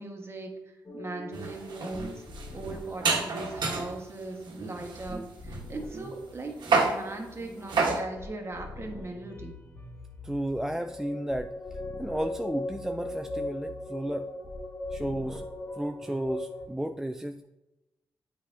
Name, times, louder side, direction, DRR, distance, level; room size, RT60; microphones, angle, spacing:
voice 1, 0.0-2.2 2.5-9.6, right 2 dB, 30° right, 3 dB, 1.3 m, -39 dB
sound 1, 0.9-16.7, left 2 dB, 30° left, 1.2 m, -41 dB
sound 2, 1.3-4.0 4.5-6.2 6.6-7.0 7.7-8.0, right 4 dB, 65° right, 1.1 m, -29 dB
voice 2, 10.2-11.5 12.0-14.3 14.9-15.4 15.8-17.5, right 1 dB, 5° right, 7 dB, 0.3 m, -33 dB
7.8 x 4.9 x 2.6 m, 0.98 s
supercardioid pair, 55°, 8 cm